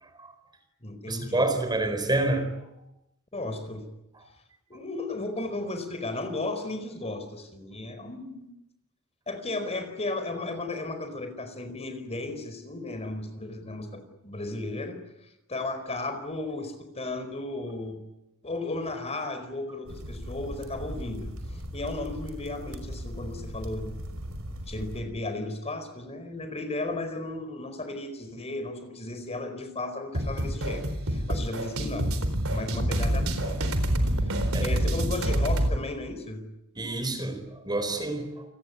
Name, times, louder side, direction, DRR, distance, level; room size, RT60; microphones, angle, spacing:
voice 1, 0.0-0.3 1.1-2.5 34.5-34.7 36.8-38.4, right 2 dB, 20° right, 7 dB, 4.4 m, -28 dB
voice 2, 0.8-1.5 3.3-3.8 4.7-8.5 9.3-15.0 15.5-18.0 18.4-23.9 24.7-32.2 32.5-34.3 34.6-36.4, left 2 dB, 30° left, 8 dB, 4.7 m, -35 dB
sound 1, 19.9-25.0, equal, 90° right, 5.4 m, -38 dB
sound 2, 30.1-35.8, right 1 dB, 70° right, 4.2 m, -27 dB
29.0 x 19.5 x 9.8 m, 0.86 s
head